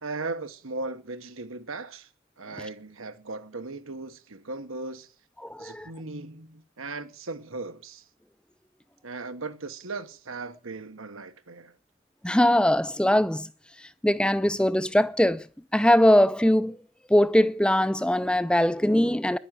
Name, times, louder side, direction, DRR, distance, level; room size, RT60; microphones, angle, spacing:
voice 1, 0.0-2.1 2.4-5.1 5.6-8.0 9.0-11.7, right 3 dB, 75° right, 1.3 m, -37 dB
voice 2, 5.4-5.9 12.2-13.5 14.0-15.5 15.7-16.8 17.1-19.4, left 1 dB, 5° left, 0.5 m, -21 dB
11.0 x 9.8 x 7.6 m
head